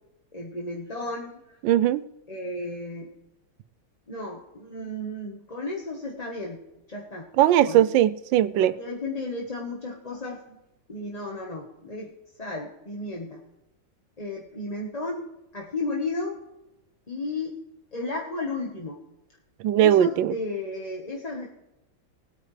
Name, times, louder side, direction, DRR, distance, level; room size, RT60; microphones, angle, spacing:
voice 1, 0.3-1.6 2.3-3.1 4.1-6.6 6.9-7.3 7.6-7.8 8.6-10.4 10.9-12.1 12.4-13.4 14.2-15.2 15.5-16.4 17.1-17.5 17.9-19.0 19.7-21.5, left 2 dB, 25° left, -1 dB, 1.2 m, -33 dB
voice 2, 1.6-2.0 7.4-8.8 19.6-20.3, right 12 dB, 85° right, 17 dB, 1.3 m, -19 dB
20.5 x 9.3 x 3.3 m, 0.91 s
omnidirectional pair, 2.0 m